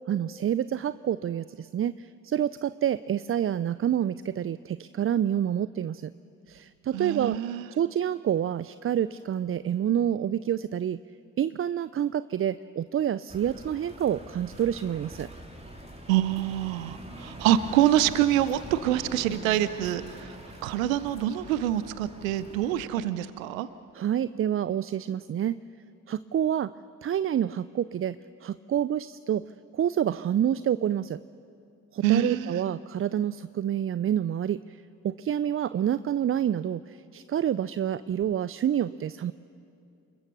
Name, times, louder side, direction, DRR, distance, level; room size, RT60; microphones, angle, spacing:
voice 1, 0.1-6.1 6.5-11.0 11.4-15.3 23.9-25.6 26.1-26.7 27.0-29.4 29.7-31.2 31.9-39.3, right 10 dB, 35° right, 16 dB, 0.5 m, -28 dB
voice 2, 6.9-7.7 16.1-20.3 20.6-23.7 32.0-32.6, right 12 dB, 85° right, 15 dB, 0.6 m, -26 dB
sound 1, 13.3-22.9, right 1 dB, 15° right, 3.5 m, -44 dB
29.0 x 21.5 x 6.2 m, 2.6 s
hypercardioid pair, 40°, 40 cm